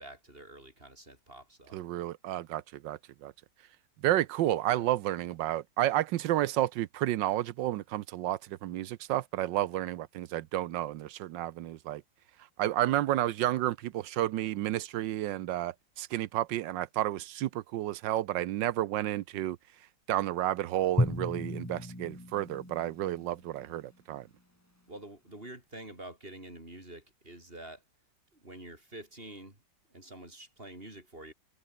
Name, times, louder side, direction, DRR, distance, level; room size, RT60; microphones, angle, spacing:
voice 1, 0.0-1.8 24.9-27.8 28.3-29.6 29.9-31.3, right 1 dB, 30° right, 6.9 m, -47 dB
voice 2, 1.7-3.3 4.0-12.0 12.6-19.6 20.1-24.3, right 14 dB, 80° right, 1.4 m, -31 dB
Drum, 21.0-23.9, left 1 dB, 10° left, 2.6 m, -34 dB
omnidirectional pair, 1.9 m